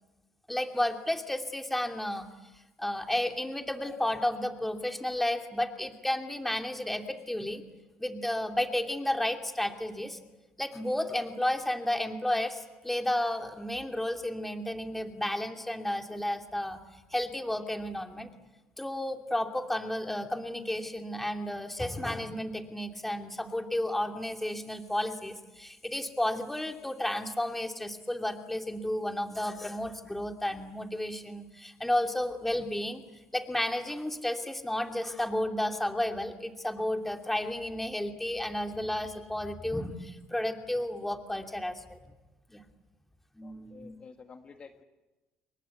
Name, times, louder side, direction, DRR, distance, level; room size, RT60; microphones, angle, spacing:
voice 1, 0.5-2.3 2.8-7.6 8.0-10.2 10.6-16.8 17.1-18.3 18.8-33.1 33.3-42.0 42.5-42.6 43.4-43.9, left 1 dB, 5° left, 5 dB, 2.6 m, -32 dB
voice 2, 43.4-44.8, left 5 dB, 35° left, 6 dB, 1.7 m, -51 dB
28.5 x 23.0 x 8.3 m, 1.1 s
cardioid pair, 110°, 3 cm